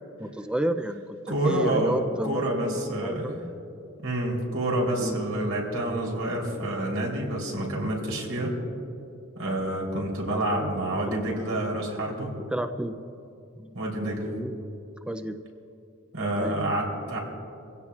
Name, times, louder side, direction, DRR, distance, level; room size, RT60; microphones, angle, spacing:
voice 1, 0.2-3.5 5.0-5.2 11.1-11.3 12.5-13.0 13.6-13.8 14.3-14.6 15.1-15.4 16.4-16.6, right 1 dB, 5° right, 8 dB, 0.4 m, -31 dB
voice 2, 1.3-3.3 4.0-8.5 9.4-12.3 13.7-14.2 16.1-17.2, right 1 dB, 90° right, -2 dB, 3.5 m, -28 dB
24.0 x 16.0 x 2.4 m, 2.7 s
head